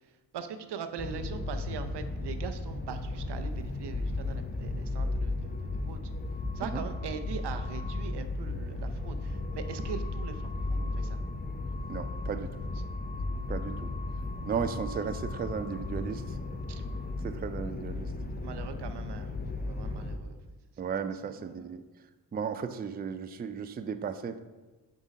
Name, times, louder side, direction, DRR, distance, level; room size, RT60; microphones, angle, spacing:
voice 1, 0.3-6.0 6.6-11.2 16.7-16.8 18.3-19.3 19.6-20.4 21.2-21.7, right 7 dB, 75° right, 9 dB, 0.6 m, -41 dB
sound 1, 1.0-20.2, left 2 dB, 25° left, 0.6 m, -35 dB
voice 2, 11.9-12.5 13.5-13.8 14.4-16.4 17.2-18.1 20.8-21.8 22.3-24.4, right 6 dB, 25° right, 10 dB, 0.3 m, -35 dB
6.4 x 3.8 x 5.1 m, 1.2 s
cardioid pair, 75°, 41 cm